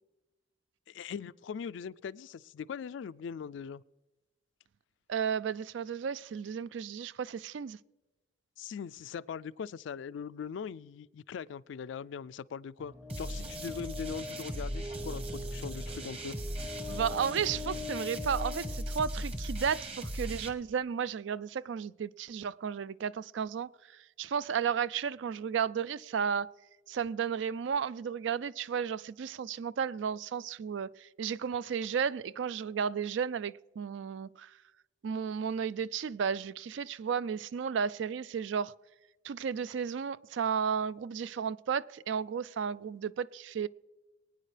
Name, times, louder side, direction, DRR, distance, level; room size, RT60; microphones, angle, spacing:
voice 1, 0.9-3.8 8.6-16.4, left 6 dB, 70° left, 0.3 m, -41 dB
voice 2, 5.1-7.8 16.9-23.7 24.2-26.5 26.9-34.5 35.0-38.7 39.2-43.7, right 7 dB, 70° right, 0.4 m, -33 dB
sound 1, 12.8-19.7, left 3 dB, 15° right, 0.7 m, -43 dB
sound 2, 13.1-20.5, right 1 dB, 30° right, 1.3 m, -38 dB
23.5 x 9.6 x 3.3 m
head